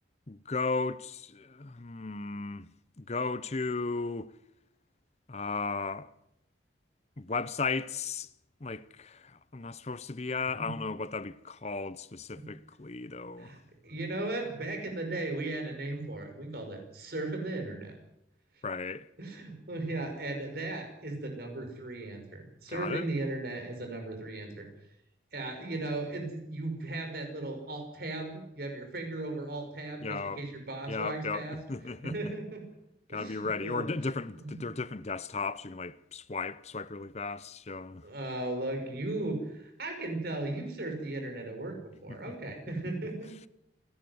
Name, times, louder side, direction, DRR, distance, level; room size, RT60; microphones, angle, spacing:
voice 1, 0.3-2.7 3.0-4.3 5.3-6.1 7.2-8.3 8.6-13.5 18.6-19.1 22.7-23.1 30.0-30.4 30.9-32.1 33.1-38.0 42.1-42.2, left 4 dB, 35° left, 0.7 m, -35 dB
voice 2, 13.4-18.0 19.2-24.7 25.3-31.6 32.0-32.6 33.1-33.9 34.3-34.6 38.0-43.3, right 2 dB, 55° right, 5.9 m, -37 dB
28.0 x 11.5 x 8.0 m
head